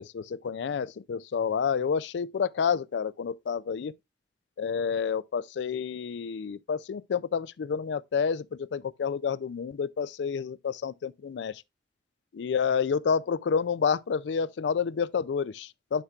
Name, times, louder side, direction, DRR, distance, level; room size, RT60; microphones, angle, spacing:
voice 1, 0.0-3.9 4.6-11.6 12.3-16.0, left 6 dB, 85° left, 0.4 m, -29 dB
10.0 x 5.8 x 2.3 m
head